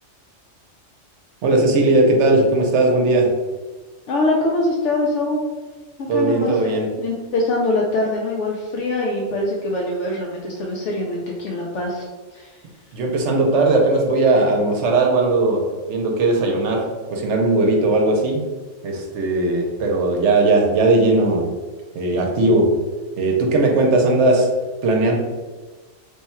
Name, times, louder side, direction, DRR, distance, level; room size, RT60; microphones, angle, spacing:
voice 1, 1.4-3.3 6.1-6.9 12.9-18.4 18.8-21.5 21.9-22.7 23.2-24.5 24.8-25.1, right 2 dB, 75° right, 1 dB, 0.9 m, -18 dB
voice 2, 4.1-5.4 6.0-6.7 7.0-12.1 12.3-12.6, left 2 dB, 75° left, -2 dB, 0.9 m, -23 dB
3.3 x 2.2 x 4.2 m, 1.3 s
omnidirectional pair, 1.3 m